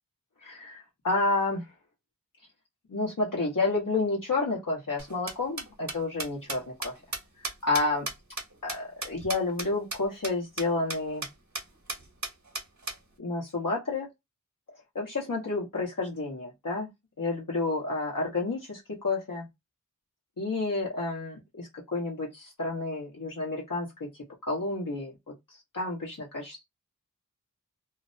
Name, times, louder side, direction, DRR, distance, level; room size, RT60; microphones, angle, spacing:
voice 1, 0.4-1.7 2.9-6.9 7.6-8.1 8.6-11.3 13.2-14.1 14.9-16.9 17.2-19.5 20.4-24.1 24.4-25.1 25.7-26.6, left 3 dB, 70° left, 1.0 m, -30 dB
sound 1, 5.0-9.7 9.9-10.0 10.2-10.3 10.6-10.7 10.9-11.3 11.5-11.6 11.9-13.0, right 3 dB, 55° right, 0.8 m, -34 dB
2.5 x 2.0 x 2.4 m
wide cardioid pair, 45°, 33 cm